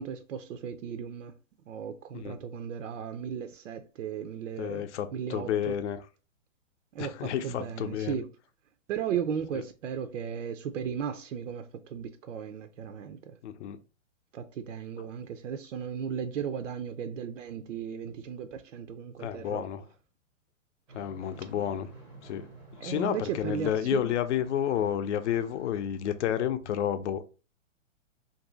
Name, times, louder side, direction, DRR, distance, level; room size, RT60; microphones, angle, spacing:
voice 1, 0.0-1.3 1.7-4.9 5.1-5.8 6.9-8.3 8.9-13.4 14.3-19.6 22.8-24.1, right 8 dB, 70° right, 0.5 m, -36 dB
voice 2, 4.6-6.0 7.0-8.2 13.4-13.8 19.2-19.8 20.9-21.9 22.2-22.5 22.8-27.2, left 10 dB, 60° left, 0.6 m, -30 dB
sound 1, 20.9-26.2, right 2 dB, 5° right, 0.5 m, -52 dB
2.7 x 2.6 x 3.8 m
hypercardioid pair, 135°, 39 cm